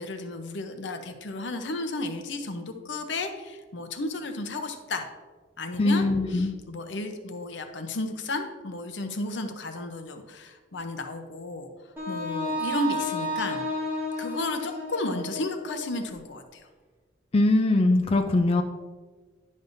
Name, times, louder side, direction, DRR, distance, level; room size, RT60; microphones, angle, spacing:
voice 1, 0.0-5.1 5.6-11.7 12.1-13.7 14.2-16.7, left 2 dB, 75° left, 6 dB, 0.8 m, -33 dB
voice 2, 5.8-6.5 17.3-18.6, left 2 dB, 30° left, 4 dB, 0.4 m, -21 dB
Wind instrument woodwind instrument, 12.0-16.0, left 1 dB, 15° right, 1.9 m, -32 dB
10.5 x 5.3 x 2.6 m, 1.4 s
head